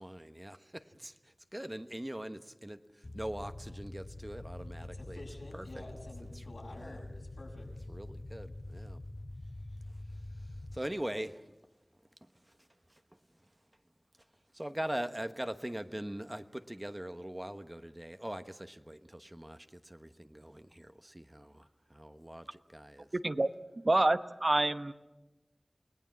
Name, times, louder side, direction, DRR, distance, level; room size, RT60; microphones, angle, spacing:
voice 1, 0.0-5.2 5.5-5.8 6.4-6.5 6.8-7.0 7.9-9.0 10.7-11.4 12.2-12.3 12.9-13.0 14.5-23.1, right 1 dB, 20° right, 9 dB, 1.1 m, -42 dB
sound 1, 3.0-10.8, left 2 dB, 55° left, 1.1 m, -45 dB
voice 2, 4.8-7.9, left 1 dB, 85° left, -1 dB, 7.0 m, -50 dB
voice 3, 23.1-23.5 23.8-24.9, right 2 dB, 55° right, 11 dB, 0.9 m, -27 dB
29.5 x 18.5 x 7.6 m, 1.0 s
wide cardioid pair, 40°, 0 cm